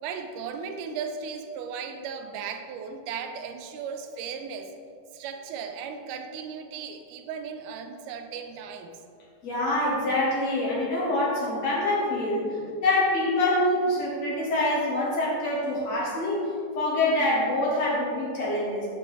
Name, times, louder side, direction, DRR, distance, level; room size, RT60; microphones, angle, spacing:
voice 1, 0.0-4.7 5.1-9.0, right 6 dB, 85° right, 6 dB, 2.1 m, -36 dB
voice 2, 9.4-16.4 16.8-18.9, left 1 dB, 60° left, -6 dB, 2.5 m, -25 dB
6.9 x 6.1 x 3.4 m, 2.5 s
omnidirectional pair, 3.6 m